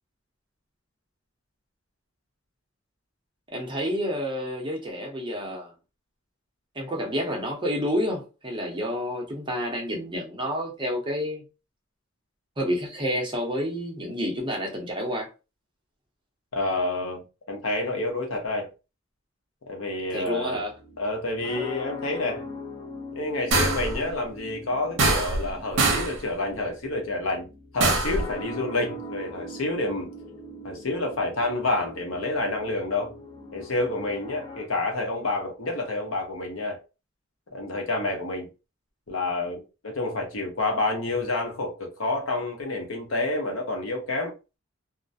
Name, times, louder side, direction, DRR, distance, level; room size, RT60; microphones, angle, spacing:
voice 1, 3.5-5.7 6.7-11.4 12.6-15.3 20.1-20.8, equal, 25° right, 0.7 m, -29 dB
voice 2, 16.5-18.7 19.7-20.6 21.0-22.5 23.1-27.5 27.7-30.1 30.6-33.1 33.5-36.8 37.5-38.5 39.1-44.3, left 2 dB, 75° left, 0.8 m, -29 dB
sound 1, 20.5-34.7, left 2 dB, 20° left, 0.4 m, -41 dB
sound 2, 23.5-24.0 25.0-25.5 25.8-26.2 27.8-28.2, right 3 dB, 65° right, 0.7 m, -23 dB
2.3 x 2.1 x 2.5 m
head